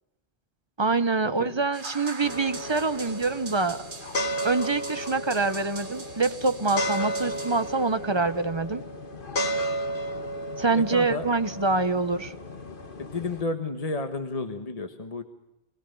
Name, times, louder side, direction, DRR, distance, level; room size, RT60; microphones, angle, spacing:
voice 1, 0.8-3.8 4.4-8.8 10.6-12.3, right 3 dB, 30° right, 12 dB, 0.9 m, -25 dB
sound 1, 1.7-8.1, right 3 dB, 50° right, 1.9 m, -43 dB
sound 2, 2.2-13.4, equal, 55° left, 1.5 m, -33 dB
voice 2, 10.7-11.2 11.7-11.9 13.0-15.2, left 3 dB, 35° left, 7 dB, 1.5 m, -32 dB
25.5 x 18.5 x 6.8 m, 0.92 s
omnidirectional pair, 1.1 m